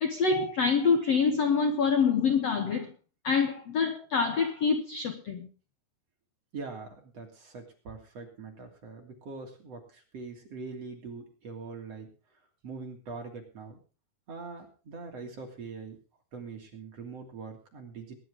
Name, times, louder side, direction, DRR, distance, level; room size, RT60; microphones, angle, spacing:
voice 1, 0.0-2.9 3.2-5.5, left 5 dB, 60° left, 1.8 m, -26 dB
voice 2, 6.5-12.1 12.6-13.8 14.3-16.0 16.3-18.2, right 4 dB, 40° right, 3.7 m, -43 dB
21.0 x 11.0 x 3.7 m
omnidirectional pair, 4.7 m